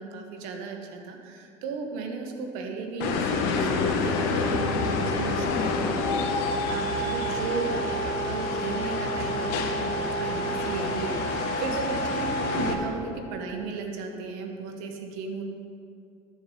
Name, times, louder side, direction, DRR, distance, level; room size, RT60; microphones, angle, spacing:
voice 1, 0.0-15.4, right 4 dB, 80° right, 3 dB, 1.3 m, -35 dB
sound 1, 3.0-12.7, left 3 dB, 75° left, 1.2 m, -28 dB
sound 2, 3.4-10.8, right 5 dB, 50° right, 2.0 m, -37 dB
13.5 x 6.9 x 3.8 m, 2.4 s
supercardioid pair, 100°, 15 cm